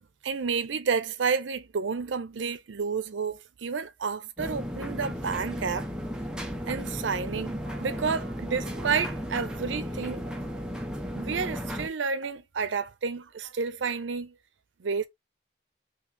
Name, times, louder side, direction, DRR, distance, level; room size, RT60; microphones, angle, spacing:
voice 1, 0.0-5.9 6.7-10.7 11.1-14.3 14.8-15.1, right 5 dB, 90° right, 0.5 m, -31 dB
sound 1, 4.4-11.9, equal, 5° right, 0.5 m, -35 dB
3.2 x 2.9 x 3.2 m
head